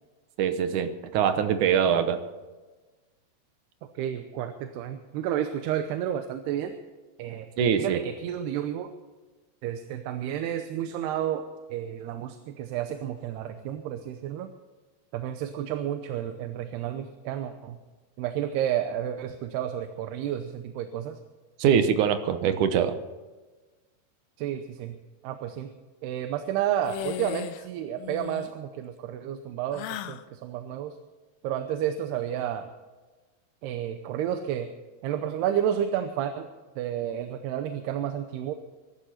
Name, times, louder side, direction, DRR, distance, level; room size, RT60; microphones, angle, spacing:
voice 1, 0.4-2.2 7.6-8.0 21.6-23.0, right 8 dB, 65° right, 9 dB, 2.1 m, -23 dB
voice 2, 4.0-6.8 7.2-7.5 7.8-8.9 9.6-14.5 15.1-17.8 18.2-21.2 24.4-25.0 25.2-25.7 26.0-31.0 31.4-32.7 33.6-34.7 35.0-36.5 36.8-38.5, right 10 dB, 85° right, 8 dB, 2.9 m, -31 dB
sound 1, 26.8-27.7 28.0-28.5 29.7-30.2, left 11 dB, 85° left, 2.6 m, -36 dB
23.5 x 12.0 x 4.3 m, 1.3 s
omnidirectional pair, 4.6 m